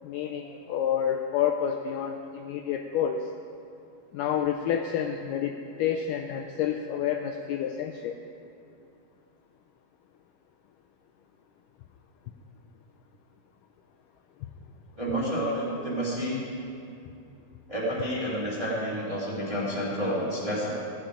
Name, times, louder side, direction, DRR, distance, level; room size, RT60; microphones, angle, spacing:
voice 1, 0.0-3.3 4.1-8.2, left 9 dB, 80° left, 4 dB, 1.9 m, -29 dB
voice 2, 15.0-16.4 17.7-20.7, equal, 10° right, -7 dB, 1.8 m, -29 dB
15.0 x 9.0 x 5.0 m, 2.6 s
omnidirectional pair, 4.1 m